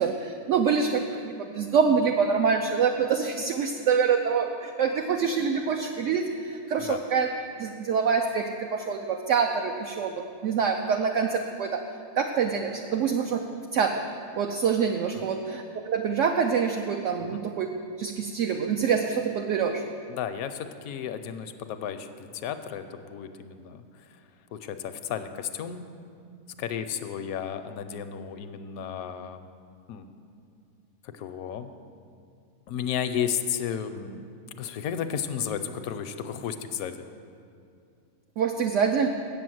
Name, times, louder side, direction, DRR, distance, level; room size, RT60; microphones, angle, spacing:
voice 1, 0.0-7.3 7.6-11.8 12.2-13.4 13.7-13.9 14.4-17.7 18.0-19.8 38.4-39.2, right 6 dB, 65° right, 3 dB, 0.8 m, -26 dB
voice 2, 20.1-23.8 24.5-25.9 26.6-29.5 29.9-30.1 31.2-31.7 32.7-34.2 34.5-37.0, left 8 dB, 75° left, 9 dB, 1.0 m, -33 dB
8.1 x 7.1 x 7.6 m, 2.4 s
omnidirectional pair, 1.6 m